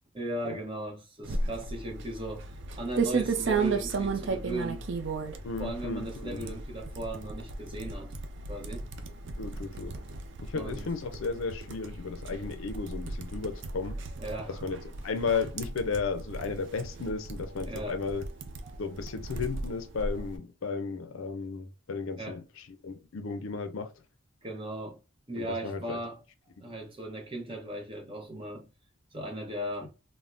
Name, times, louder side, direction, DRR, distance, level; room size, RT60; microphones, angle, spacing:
voice 1, 0.1-2.5 2.8-4.9 5.6-8.1 8.5-8.9 10.5-10.9 14.2-14.6 17.6-18.0 18.6-18.8 22.2-22.4 24.4-25.0 25.3-26.2 26.6-28.7 29.1-29.9, right 1 dB, 25° right, 0.8 m, -37 dB
sound 1, 1.2-20.4, right 3 dB, 60° right, 0.4 m, -35 dB
voice 2, 5.4-6.6 9.4-10.0 10.4-14.0 14.5-18.3 18.8-23.9 25.4-26.0, left 4 dB, 70° left, 0.5 m, -34 dB
3.5 x 2.1 x 2.4 m
head